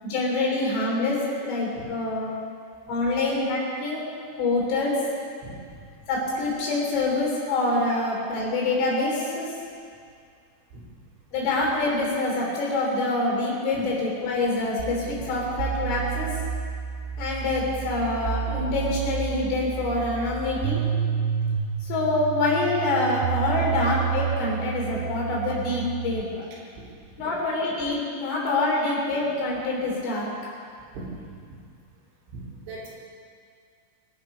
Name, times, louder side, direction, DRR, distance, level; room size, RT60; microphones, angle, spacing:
voice 1, 0.0-2.3 2.9-4.0 4.4-5.0 6.1-9.5 11.3-16.4 17.2-20.8 21.8-26.5 27.2-30.3, left 2 dB, 75° left, -3 dB, 5.7 m, -26 dB
sound 1, 14.8-26.2, right 9 dB, 85° right, 2.4 m, -30 dB
voice 2, 32.3-32.9, right 3 dB, 65° right, -6 dB, 5.7 m, -39 dB
23.5 x 9.0 x 5.3 m, 2.2 s
omnidirectional pair, 5.6 m